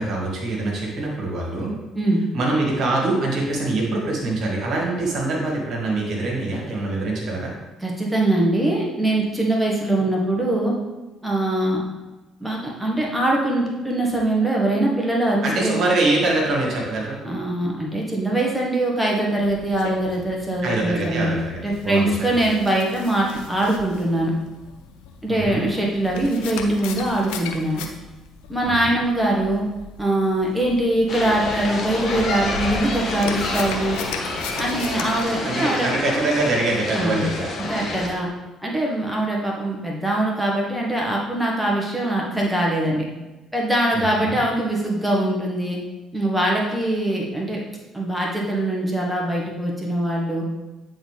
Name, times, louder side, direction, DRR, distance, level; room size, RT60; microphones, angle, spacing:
voice 1, 0.0-1.8 2.3-7.5 15.4-17.2 20.6-22.5 25.3-25.7 28.6-29.0 35.4-37.5 43.9-44.4, right 2 dB, 55° right, -2 dB, 1.9 m, -24 dB
voice 2, 7.8-10.7 11.2-11.8 12.4-15.8 17.2-24.3 25.2-27.8 28.5-29.6 30.0-34.0 34.5-35.9 36.9-37.2 37.7-38.3 38.6-43.1 43.5-45.8 46.1-47.6 47.9-50.4, right 1 dB, 5° right, -3 dB, 1.5 m, -22 dB
sound 1, 19.4-35.2, left 5 dB, 70° left, 0.6 m, -38 dB
sound 2, 31.1-38.1, left 2 dB, 45° left, 1.5 m, -28 dB
8.8 x 4.1 x 3.4 m, 1.1 s
hypercardioid pair, 50°, 0 cm